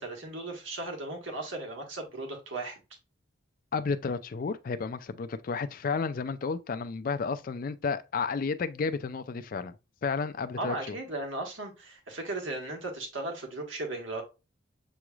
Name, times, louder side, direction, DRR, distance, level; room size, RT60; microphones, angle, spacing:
voice 1, 0.0-2.8 10.6-14.2, right 2 dB, 70° right, 1.3 m, -36 dB
voice 2, 3.7-9.7 10.0-11.0, left 5 dB, 40° left, 0.3 m, -32 dB
6.9 x 3.1 x 2.3 m
head